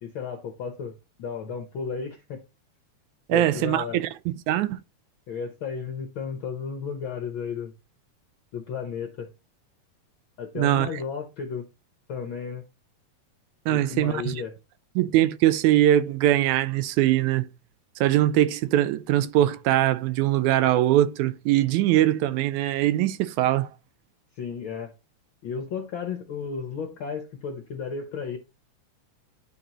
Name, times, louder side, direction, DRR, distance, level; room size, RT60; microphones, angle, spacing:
voice 1, 0.0-2.4 3.3-4.0 5.3-7.7 8.5-9.3 10.4-11.7 12.1-12.7 13.7-14.6 24.3-24.9 25.4-28.4, left 6 dB, 70° left, 1.2 m, -33 dB
voice 2, 3.3-4.8 10.6-10.9 13.7-14.4 15.0-17.5 18.0-23.7, right 13 dB, 85° right, 2.0 m, -22 dB
11.5 x 4.0 x 2.9 m
omnidirectional pair, 3.4 m